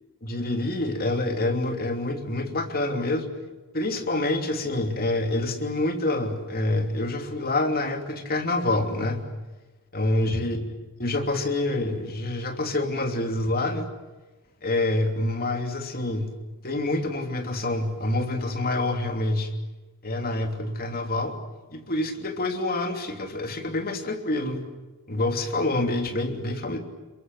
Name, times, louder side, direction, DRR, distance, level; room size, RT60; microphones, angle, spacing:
voice 1, 0.2-3.3 3.7-9.2 9.9-10.6 11.0-13.9 14.6-16.3 16.6-19.5 20.0-21.3 21.7-24.6 25.1-26.8, left 2 dB, 40° left, 4 dB, 3.0 m, -27 dB
27.5 x 23.0 x 8.0 m, 1.2 s
head